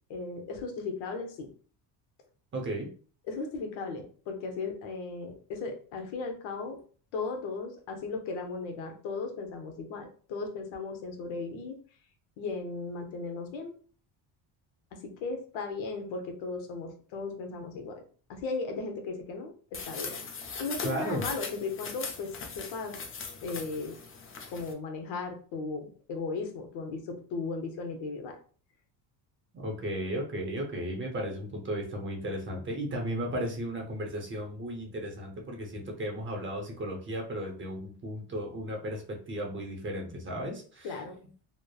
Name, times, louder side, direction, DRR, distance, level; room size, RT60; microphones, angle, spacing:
voice 1, 0.1-1.5 3.3-6.8 7.1-11.8 12.4-13.7 14.9-18.0 18.3-20.2 20.5-23.0 23.4-24.0 24.5-28.4 40.8-41.2, left 4 dB, 80° left, 4 dB, 0.8 m, -36 dB
voice 2, 2.5-2.9 20.8-21.2 29.5-40.9, equal, 25° right, 1 dB, 0.6 m, -35 dB
sound 1, 19.7-24.7, left 5 dB, 30° left, 0.4 m, -40 dB
3.1 x 2.0 x 2.3 m, 0.42 s
cardioid pair, 120°, 45 cm